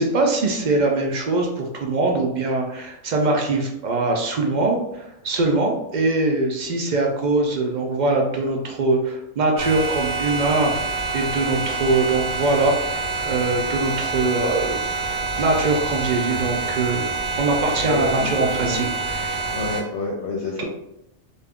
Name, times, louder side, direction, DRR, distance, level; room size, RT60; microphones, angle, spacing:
voice 1, 0.0-14.8 15.0-17.0 17.4-19.5 20.6-20.7, right 2 dB, 55° right, 1 dB, 0.5 m, -22 dB
sound 1, 9.6-19.8, right 3 dB, 90° right, 1.1 m, -26 dB
voice 2, 17.8-18.9 19.5-20.6, left 2 dB, 70° left, -2 dB, 0.8 m, -29 dB
2.6 x 2.4 x 3.4 m, 0.83 s
omnidirectional pair, 1.3 m